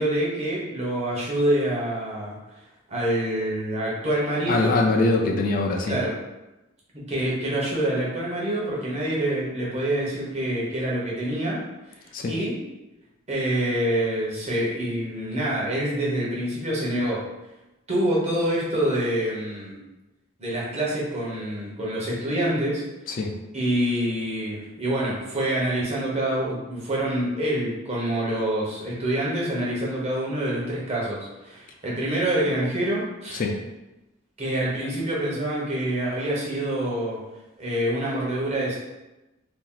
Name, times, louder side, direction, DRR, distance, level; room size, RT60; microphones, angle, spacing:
voice 1, 0.0-2.4 2.9-4.7 5.9-6.1 6.9-11.6 12.3-12.6 13.3-17.2 17.9-19.8 20.4-22.8 23.5-33.4 34.4-37.2 37.6-38.8, right 1 dB, 35° right, -5 dB, 1.0 m, -26 dB
voice 2, 4.5-6.0 12.1-12.3 23.1-23.3 33.3-33.6, left 2 dB, 45° left, 1 dB, 0.4 m, -23 dB
2.9 x 2.4 x 3.8 m, 1.0 s
head